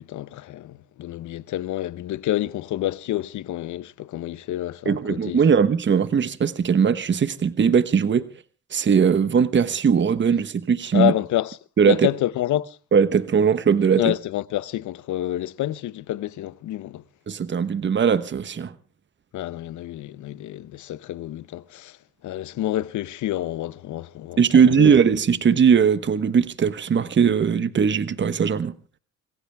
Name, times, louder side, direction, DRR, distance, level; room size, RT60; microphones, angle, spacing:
voice 1, 0.0-5.4 10.9-11.6 11.9-12.8 14.0-17.0 19.3-22.0 22.2-24.4 24.7-24.9, left 14 dB, 75° left, 0.8 m, -28 dB
voice 2, 4.8-8.3 8.7-11.1 11.8-12.1 12.9-14.1 17.3-18.7 24.4-28.7, right 6 dB, 40° right, 1.2 m, -19 dB
26.0 x 15.5 x 3.5 m
cardioid pair, 90°, 30 cm